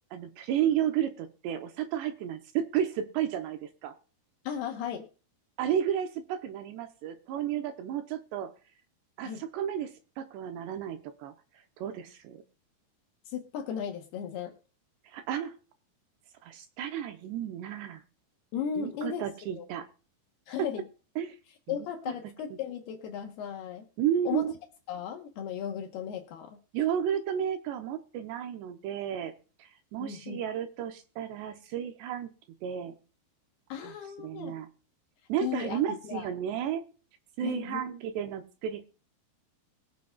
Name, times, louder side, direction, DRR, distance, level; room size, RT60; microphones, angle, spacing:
voice 1, 0.1-4.0 5.6-8.5 9.2-11.3 11.8-12.4 15.0-15.6 16.4-18.0 18.8-19.9 21.2-21.4 21.7-22.1 24.0-24.5 26.7-32.3 32.6-33.0 33.8-33.9 34.2-34.7 35.3-36.9 37.4-38.8, right 10 dB, 80° right, 6 dB, 2.7 m, -32 dB
voice 2, 4.4-5.1 9.2-9.4 13.3-14.5 18.5-19.2 19.6-19.7 20.5-20.8 21.7-23.9 24.3-24.5 24.9-26.6 30.0-30.4 33.7-34.5 35.4-36.3 37.4-37.8, left 8 dB, 70° left, 3 dB, 2.7 m, -36 dB
21.5 x 7.7 x 2.3 m, 0.36 s
omnidirectional pair, 5.4 m